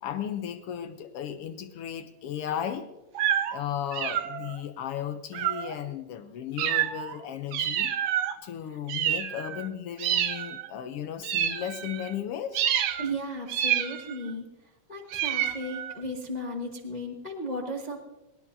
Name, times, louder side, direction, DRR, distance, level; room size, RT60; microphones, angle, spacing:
voice 1, 0.0-2.9 3.5-7.9 8.4-12.7, left 9 dB, 75° left, 9 dB, 1.4 m, -35 dB
sound 1, 3.1-3.6 3.9-4.6 5.3-5.8 6.6-7.2 7.5-8.4 8.9-9.7 10.0-10.7 11.2-12.1 12.5-13.1 13.5-14.3 15.1-16.0, right 10 dB, 80° right, 2.1 m, -28 dB
voice 2, 13.0-14.4 14.9-18.0, equal, 55° left, 0 dB, 0.4 m, -35 dB
19.5 x 19.0 x 2.7 m, 0.99 s
omnidirectional pair, 3.3 m